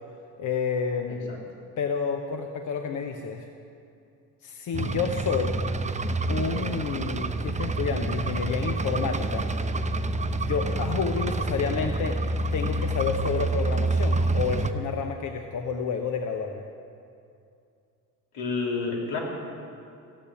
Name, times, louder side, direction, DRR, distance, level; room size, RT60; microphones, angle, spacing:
voice 1, 0.4-1.4 1.8-3.5 4.4-5.6 6.3-9.5 10.4-12.2 12.5-16.6, left 6 dB, 45° left, 5 dB, 1.1 m, -29 dB
sound 1, 4.7-14.7, right 2 dB, 15° right, 0.7 m, -28 dB
voice 2, 18.3-19.2, left 4 dB, 70° left, -1 dB, 3.5 m, -29 dB
15.5 x 8.3 x 9.1 m, 2.5 s
hypercardioid pair, 70°, 43 cm